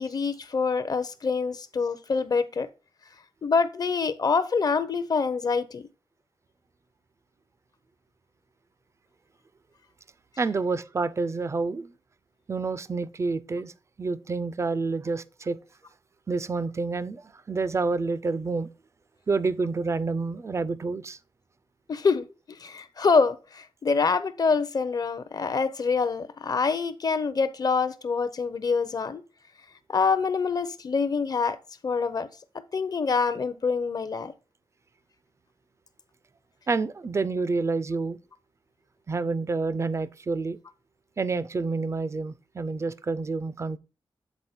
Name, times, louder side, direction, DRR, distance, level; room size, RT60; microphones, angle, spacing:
voice 1, 0.0-2.7 3.4-5.8 21.9-29.2 29.9-31.6 31.8-32.3 32.7-34.3, left 5 dB, 40° left, 0.5 m, -26 dB
voice 2, 10.4-11.9 12.5-13.7 14.0-15.6 16.3-18.7 19.3-21.2 36.7-38.2 39.1-40.6 41.2-43.8, right 3 dB, 30° right, 0.3 m, -28 dB
8.0 x 4.1 x 4.2 m
wide cardioid pair, 140°, 10 cm